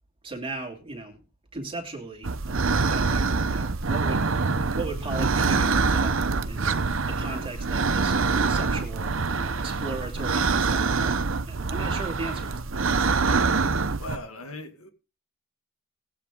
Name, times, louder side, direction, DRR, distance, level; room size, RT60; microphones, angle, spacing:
voice 1, 0.2-1.2 1.5-13.3, right 3 dB, 25° right, 2.8 m, -38 dB
sound 1, 2.2-14.2, right 4 dB, 60° right, 0.8 m, -25 dB
voice 2, 13.5-14.9, left 2 dB, 75° left, 2.1 m, -40 dB
19.0 x 8.6 x 3.7 m
head